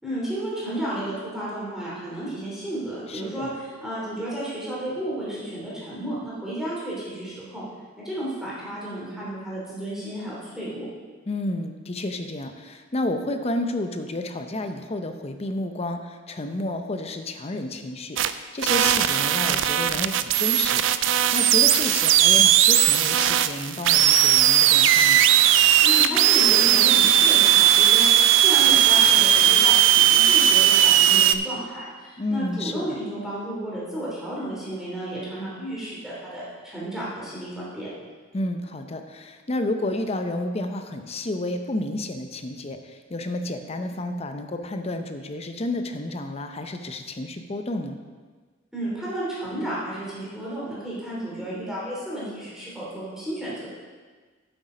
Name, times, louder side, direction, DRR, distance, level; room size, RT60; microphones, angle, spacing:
voice 1, 0.0-7.6 8.0-10.8 25.8-37.9 48.7-53.7, right 1 dB, 5° right, -8 dB, 2.9 m, -32 dB
voice 2, 3.1-3.5 11.3-25.2 32.2-32.8 38.3-48.0, left 1 dB, 35° left, 7 dB, 0.6 m, -31 dB
sound 1, 18.2-18.3 18.6-31.3, right 11 dB, 75° right, 0.4 m, -18 dB
8.3 x 8.0 x 5.0 m, 1.5 s
head